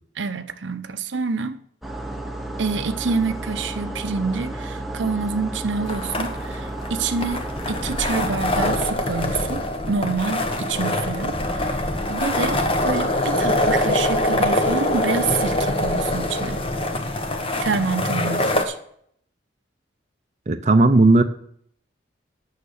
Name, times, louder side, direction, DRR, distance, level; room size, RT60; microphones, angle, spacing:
voice 1, 0.2-1.6 2.6-11.8 12.1-16.6 17.6-18.8, right 4 dB, 80° right, 0.7 m, -27 dB
sound 1, 1.8-8.8, right 1 dB, ahead, 0.8 m, -32 dB
sound 2, 5.9-18.6, left 1 dB, 30° left, 1.1 m, -24 dB
voice 2, 20.5-21.2, right 2 dB, 40° right, 0.6 m, -15 dB
9.4 x 6.6 x 6.5 m
head